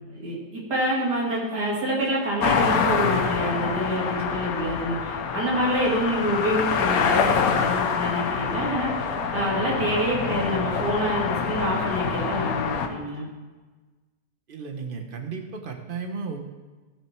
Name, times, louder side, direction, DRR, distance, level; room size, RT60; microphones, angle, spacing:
voice 1, 0.1-13.3, equal, 75° right, -5 dB, 3.2 m, -27 dB
sound 1, 2.4-12.9, left 6 dB, 65° left, 1.3 m, -26 dB
voice 2, 14.5-16.4, right 5 dB, 35° right, 5 dB, 1.1 m, -34 dB
15.0 x 6.7 x 4.5 m, 1.3 s
omnidirectional pair, 1.8 m